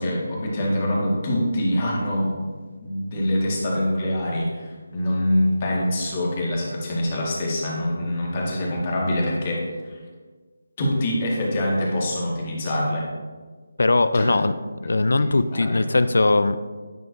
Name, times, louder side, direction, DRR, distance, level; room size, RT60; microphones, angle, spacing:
voice 1, 0.0-2.5 2.8-10.0 10.8-13.1 14.1-14.3 14.8-16.0, left 1 dB, 35° left, -3 dB, 1.8 m, -25 dB
voice 2, 13.8-14.6 14.8-16.6, left 2 dB, 75° left, 13 dB, 0.4 m, -20 dB
9.0 x 6.2 x 2.7 m, 1.5 s
figure-of-eight pair, 160°, 0 cm